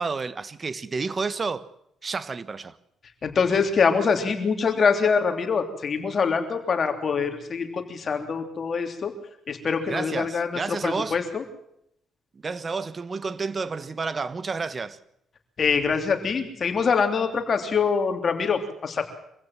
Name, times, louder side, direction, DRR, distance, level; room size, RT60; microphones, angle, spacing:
voice 1, 0.0-1.7 2.0-2.8 9.9-11.2 12.3-15.0, right 4 dB, 35° right, 1.2 m, -30 dB
voice 2, 3.2-9.1 9.5-11.4 15.6-19.0, left 5 dB, 45° left, 3.2 m, -24 dB
25.0 x 16.0 x 7.5 m
cardioid pair, 90°, 0 cm